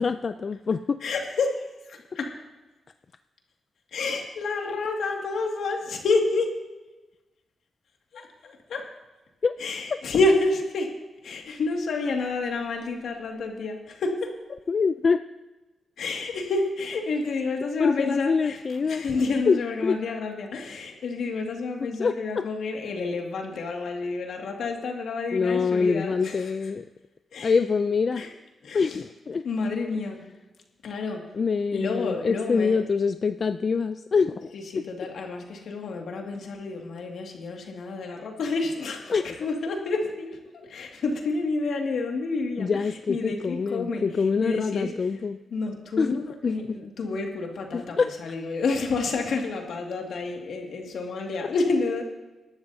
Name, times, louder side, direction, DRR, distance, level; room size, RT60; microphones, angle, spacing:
voice 1, 0.0-1.0 9.4-9.6 14.7-15.2 17.8-19.0 19.5-20.0 21.8-22.4 25.3-26.8 27.4-28.2 28.7-29.5 31.3-34.5 39.1-39.5 42.6-45.4 46.0-46.1 46.4-46.5 47.7-48.1, left 5 dB, 45° left, 10 dB, 0.4 m, -25 dB
voice 2, 1.0-2.4 3.9-6.6 8.1-8.9 9.6-14.4 16.0-26.7 27.3-27.6 28.1-28.3 28.6-29.0 29.4-30.3 30.8-31.3 31.7-32.8 34.5-45.2 45.5-52.0, left 3 dB, 80° left, 2 dB, 2.1 m, -29 dB
20.5 x 12.0 x 2.7 m, 1.1 s
cardioid pair, 100°, 0 cm